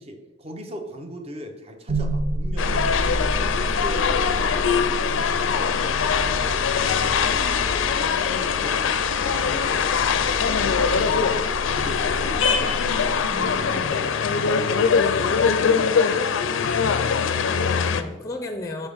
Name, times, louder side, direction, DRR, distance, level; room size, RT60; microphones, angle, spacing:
voice 1, 0.0-5.8 6.2-6.7 7.1-9.0 9.4-13.2 13.6-16.8, equal, 30° right, 4 dB, 0.7 m, -39 dB
sound 1, 1.9-13.9, right 1 dB, 75° right, 1.3 m, -31 dB
sound 2, 2.6-18.0, left 6 dB, 90° left, 0.4 m, -22 dB
voice 2, 13.3-13.9 17.5-18.9, left 1 dB, 15° left, 5 dB, 0.5 m, -34 dB
6.2 x 5.3 x 3.5 m, 1.1 s
head